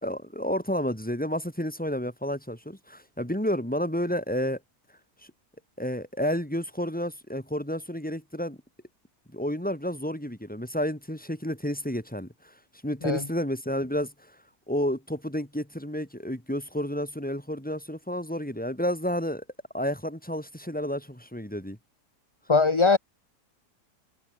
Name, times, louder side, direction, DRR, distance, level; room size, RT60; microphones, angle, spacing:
voice 1, 0.0-4.6 5.8-8.6 9.3-12.3 12.8-14.1 14.7-19.4 19.7-21.8, equal, 5° left, 3.7 m, -30 dB
voice 2, 22.5-23.0, left 4 dB, 20° left, 0.9 m, -20 dB
omnidirectional pair, 1.9 m